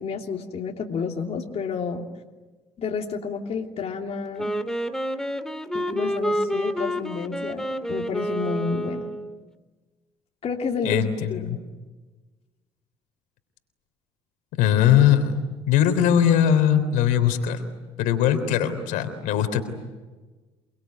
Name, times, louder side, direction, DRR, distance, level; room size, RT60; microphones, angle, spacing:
voice 1, 0.0-2.0 2.8-4.5 5.7-9.1 10.4-11.6, left 5 dB, 50° left, 1 dB, 3.1 m, -30 dB
Wind instrument woodwind instrument, 4.4-9.4, equal, 5° left, 2.3 m, -28 dB
voice 2, 10.8-11.6 14.6-17.6 18.0-19.6, left 9 dB, 75° left, 9 dB, 3.5 m, -20 dB
29.0 x 21.5 x 9.5 m, 1.3 s
hypercardioid pair, 65°, 14 cm